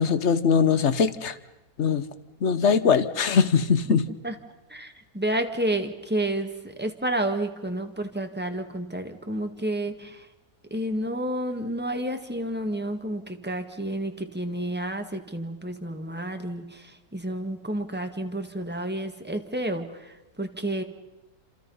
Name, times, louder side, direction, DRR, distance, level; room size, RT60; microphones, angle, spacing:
voice 1, 0.0-1.4 1.8-2.1 2.4-4.1, left 6 dB, 50° left, 13 dB, 1.3 m, -21 dB
voice 2, 4.7-10.3 10.7-20.8, right 1 dB, 5° right, 5 dB, 1.6 m, -30 dB
28.5 x 27.0 x 5.6 m, 1.0 s
omnidirectional pair, 1.7 m